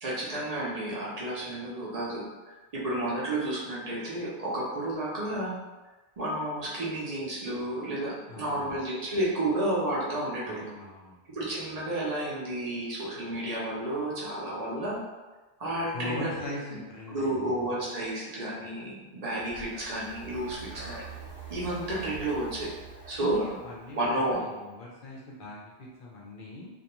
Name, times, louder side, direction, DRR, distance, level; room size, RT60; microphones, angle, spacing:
voice 1, 0.0-2.3 2.7-5.6 6.2-10.7 11.3-15.0 15.6-16.8 17.1-21.0 21.5-22.7 23.1-23.5 23.9-24.4, right 1 dB, 45° right, -5 dB, 0.6 m, -31 dB
voice 2, 8.3-8.8 10.5-11.2 15.9-17.6 23.2-26.7, left 2 dB, 60° left, -4 dB, 0.6 m, -41 dB
Breathing, 19.4-24.3, right 4 dB, 75° right, 1.0 m, -45 dB
2.4 x 2.2 x 2.9 m, 1.2 s
omnidirectional pair, 1.1 m